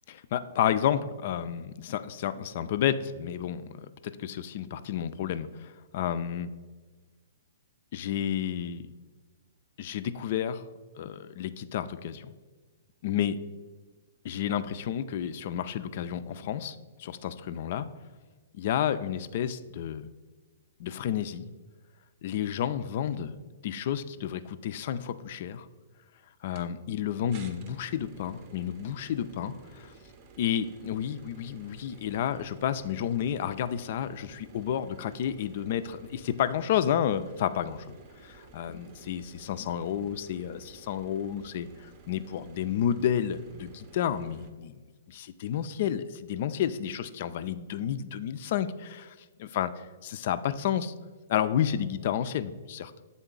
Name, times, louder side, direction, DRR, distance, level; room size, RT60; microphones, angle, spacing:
voice 1, 0.1-6.5 7.9-8.8 9.8-10.6 10.9-12.3 13.0-13.4 14.2-17.9 18.5-20.1 20.8-21.4 22.2-23.4 23.6-25.7 26.4-29.9 30.4-37.9 38.2-44.8 45.1-50.9 51.3-52.9, left 9 dB, 55° left, 12 dB, 0.3 m, -31 dB
sound 1, 26.5-26.7 27.3-44.5, right 5 dB, 40° right, 0.6 m, -53 dB
7.0 x 3.8 x 3.8 m, 1.3 s
hypercardioid pair, 125°, 0 cm